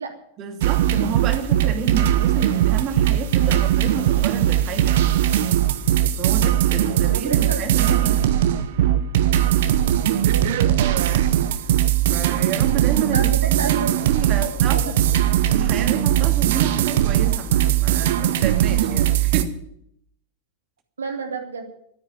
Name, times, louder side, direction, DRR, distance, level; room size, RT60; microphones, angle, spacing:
voice 1, 0.4-5.0 6.2-8.2 12.1-13.8 14.1-15.0 15.5-19.6, right 7 dB, 35° right, 2.6 m, -30 dB
sound 1, 0.6-19.4, right 11 dB, 55° right, 1.1 m, -19 dB
voice 2, 6.7-8.4 10.1-10.5 13.1-14.9 21.0-21.7, right 5 dB, 70° right, 2.9 m, -31 dB
13.0 x 9.7 x 9.2 m
figure-of-eight pair, 90°, 0 cm